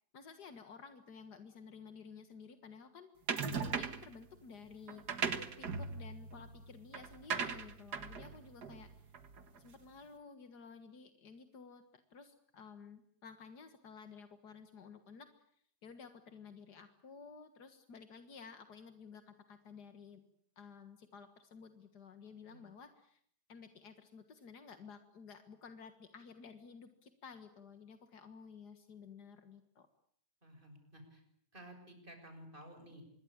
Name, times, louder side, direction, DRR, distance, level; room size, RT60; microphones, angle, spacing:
voice 1, 0.1-3.1 3.5-5.0 5.3-8.9 9.6-11.8 12.1-15.3 15.8-20.2 20.6-23.2 23.5-29.9, left 5 dB, 85° left, 8 dB, 2.2 m, -53 dB
sound 1, 3.3-4.1 4.9-9.6, right 5 dB, 85° right, 2.2 m, -39 dB
voice 2, 30.4-31.2 31.5-33.0, equal, 30° right, 6 dB, 6.8 m, -54 dB
25.5 x 23.0 x 8.8 m, 0.66 s
omnidirectional pair, 1.7 m